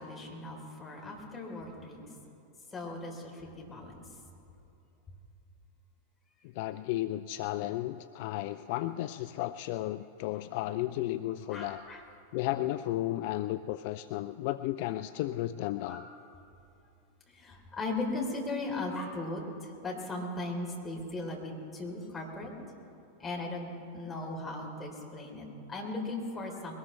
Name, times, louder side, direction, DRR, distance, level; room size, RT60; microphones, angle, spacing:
voice 1, 0.0-2.0 2.7-3.9 11.5-12.0 15.8-16.1 17.3-22.5 23.2-26.7, left 2 dB, 15° left, -2 dB, 3.8 m, -38 dB
voice 2, 6.5-11.8 12.3-16.1, left 15 dB, 50° left, 12 dB, 0.3 m, -33 dB
21.5 x 19.0 x 3.3 m, 2.6 s
figure-of-eight pair, 90°, 0 cm